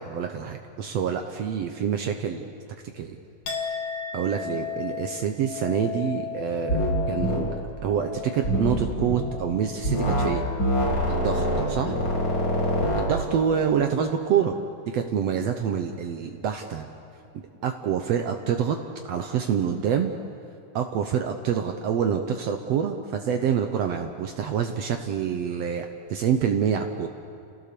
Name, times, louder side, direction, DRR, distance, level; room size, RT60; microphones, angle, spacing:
voice 1, 0.0-2.5 2.9-3.2 4.1-10.4 11.1-11.9 12.9-14.6 14.9-16.9 17.6-18.8 19.1-20.1 20.7-27.1, right 8 dB, 75° right, 5 dB, 1.5 m, -26 dB
Chink clink, 3.5-11.1 11.5-12.2, left 7 dB, 65° left, 3.4 m, -36 dB
sound 1, 6.7-6.9 7.2-7.4 8.4-9.2 9.8-10.3 10.6-13.1, equal, 30° left, 4.6 m, -24 dB
29.0 x 16.5 x 6.8 m, 2.5 s
omnidirectional pair, 4.0 m